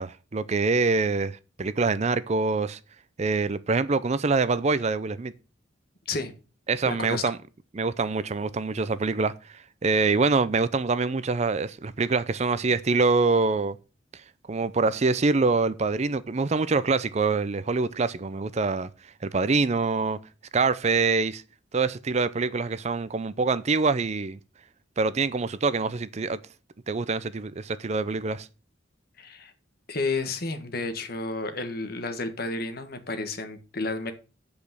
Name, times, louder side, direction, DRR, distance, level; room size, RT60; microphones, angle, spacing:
voice 1, 0.0-2.8 3.2-5.3 6.7-7.4 7.7-13.8 14.5-18.9 19.2-20.2 20.5-21.4 21.7-24.4 25.0-26.4 26.9-28.5, right 4 dB, 35° right, 0.5 m, -25 dB
voice 2, 6.8-7.3 29.2-29.5 29.9-34.1, left 3 dB, 55° left, 1.5 m, -31 dB
8.3 x 5.2 x 6.9 m
head